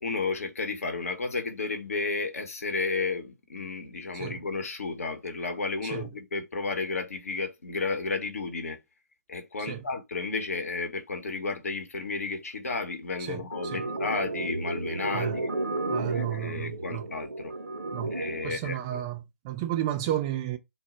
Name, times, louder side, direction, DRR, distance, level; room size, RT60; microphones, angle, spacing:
voice 1, 0.0-8.8 9.3-15.5 16.1-17.5 18.1-19.0, left 3 dB, 60° left, 0.7 m, -32 dB
voice 2, 13.2-13.9 15.1-15.4 15.9-17.1 17.9-18.2 18.4-20.6, right 12 dB, 20° right, 0.3 m, -32 dB
sound 1, 13.5-18.5, right 2 dB, 85° right, 0.5 m, -33 dB
2.0 x 2.0 x 3.7 m
figure-of-eight pair, 135°, 9 cm